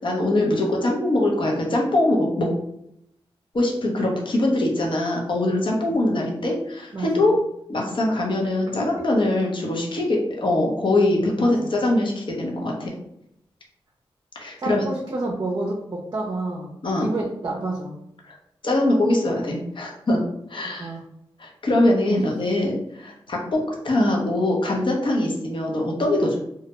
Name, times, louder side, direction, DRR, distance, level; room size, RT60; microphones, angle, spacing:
voice 1, 0.0-2.5 3.5-7.3 7.7-12.9 14.4-14.8 16.8-17.1 18.6-20.2 20.5-21.0 21.4-26.4, left 1 dB, 55° left, -1 dB, 0.7 m, -22 dB
voice 2, 6.9-7.3 8.7-8.9 11.4-11.7 14.6-16.7 17.0-17.9 20.6-21.0 22.1-22.2, right 2 dB, 45° right, -2 dB, 0.5 m, -29 dB
2.3 x 2.1 x 2.9 m, 0.77 s
cardioid pair, 50°, 10 cm